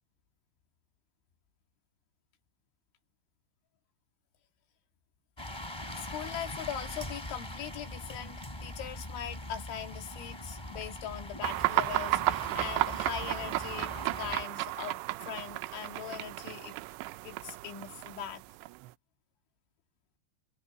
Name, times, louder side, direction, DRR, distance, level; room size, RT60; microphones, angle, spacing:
sound 1, 5.4-14.4, left 1 dB, 5° left, 2.6 m, -42 dB
voice 1, 5.9-16.8 17.2-18.4, left 9 dB, 80° left, 5.0 m, -41 dB
sound 2, 11.4-18.9, right 20 dB, 80° right, 2.8 m, -33 dB
omnidirectional pair, 5.4 m